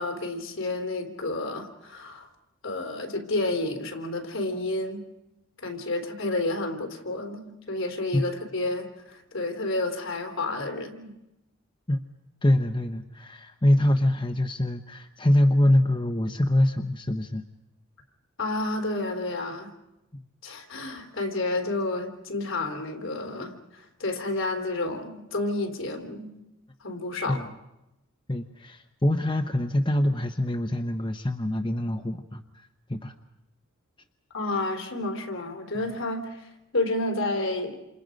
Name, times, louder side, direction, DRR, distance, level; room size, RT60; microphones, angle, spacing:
voice 1, 0.0-2.3 2.6-5.0 5.6-11.1 18.4-19.7 20.4-26.4 26.8-27.5 34.3-37.8, left 2 dB, 60° left, 4 dB, 3.5 m, -30 dB
voice 2, 12.4-17.4 20.1-20.2 27.3-27.5 28.3-33.1 35.8-35.9, left 1 dB, 20° left, 5 dB, 0.8 m, -24 dB
28.0 x 28.0 x 5.2 m, 0.93 s
head